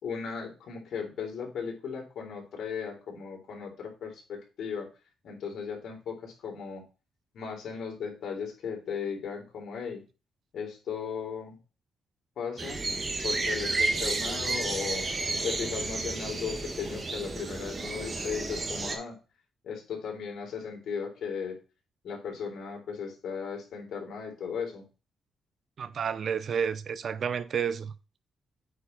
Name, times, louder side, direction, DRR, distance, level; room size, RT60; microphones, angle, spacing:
voice 1, 0.0-4.9 5.2-6.8 7.3-10.0 10.5-11.6 12.4-12.9 13.2-15.0 15.4-19.2 19.6-21.6 22.0-24.9, left 6 dB, 70° left, 3.5 m, -36 dB
sound 1, 12.6-19.0, right 3 dB, 30° right, 1.4 m, -31 dB
voice 2, 25.8-27.9, right 7 dB, 55° right, 0.6 m, -30 dB
8.8 x 4.6 x 4.0 m
cardioid pair, 135°, 0 cm